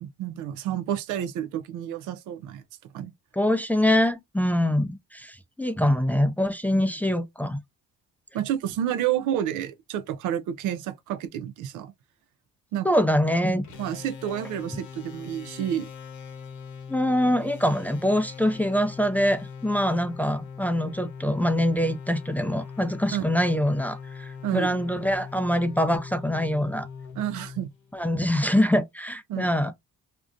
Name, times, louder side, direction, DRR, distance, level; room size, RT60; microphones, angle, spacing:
voice 1, 0.0-2.6 2.9-3.1 8.3-11.9 12.7-13.0 13.8-15.9 23.1-23.2 24.4-24.8 27.2-27.7 29.3-29.6, right 10 dB, 90° right, 0.5 m, -30 dB
voice 2, 3.3-7.6 12.8-13.6 16.9-26.9 27.9-29.7, equal, 5° left, 0.3 m, -24 dB
sound 1, 13.6-28.2, left 6 dB, 70° left, 0.9 m, -41 dB
2.4 x 2.1 x 2.5 m
cardioid pair, 90°, 30 cm